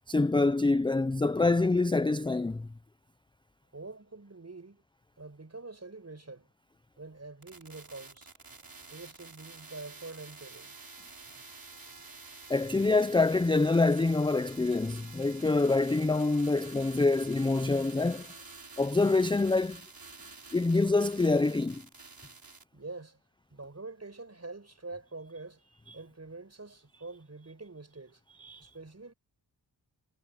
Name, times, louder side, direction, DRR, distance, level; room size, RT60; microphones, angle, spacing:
voice 1, 0.1-2.7 12.5-18.3 18.8-19.8 20.5-21.8 25.9-26.0 28.4-28.7, left 3 dB, 10° left, 0.4 m, -26 dB
voice 2, 3.7-4.8 5.2-6.5 7.0-8.3 8.9-10.8 11.8-12.0 22.7-23.2 23.5-28.2 28.6-29.1, right 3 dB, 35° right, 6.0 m, -46 dB
sound 1, 7.4-22.6, right 3 dB, 50° right, 5.8 m, -49 dB
wide cardioid pair, 100°, 46 cm